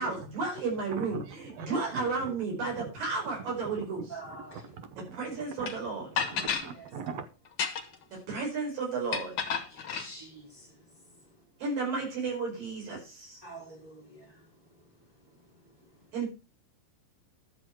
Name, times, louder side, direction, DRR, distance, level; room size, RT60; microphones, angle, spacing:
voice 1, 0.0-4.0 5.0-6.1 8.3-9.3 11.6-13.4 16.1-16.3, right 4 dB, 85° right, 0 dB, 6.8 m, -33 dB
voice 2, 0.9-2.9 3.6-5.2 5.6-7.3, right 5 dB, 65° right, 9 dB, 1.9 m, -42 dB
voice 3, 4.1-4.7 6.7-6.9 9.5-10.9 13.4-14.4, right 2 dB, 5° right, 0 dB, 4.6 m, -46 dB
sound 1, 5.7-5.8 6.2-6.7 7.5-8.0 9.1-10.1, left 6 dB, 50° left, 1.5 m, -31 dB
12.5 x 7.3 x 4.6 m, 0.31 s
omnidirectional pair, 3.8 m